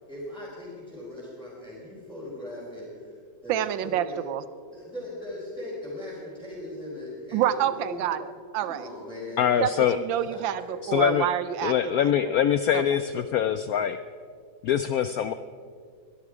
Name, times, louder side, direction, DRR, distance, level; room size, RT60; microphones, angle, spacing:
voice 1, 0.1-3.2 3.4-4.2 4.7-8.0 8.6-9.6 10.3-10.8, left 1 dB, ahead, -9 dB, 4.6 m, -39 dB
voice 2, 3.5-4.4 7.3-8.9 9.6-12.4 12.7-12.8, right 11 dB, 85° right, 13 dB, 1.3 m, -28 dB
voice 3, 9.4-10.0 10.8-11.3 11.6-14.0 14.6-15.3, left 9 dB, 75° left, 11 dB, 0.8 m, -24 dB
22.0 x 12.0 x 4.9 m, 2.1 s
omnidirectional pair, 2.0 m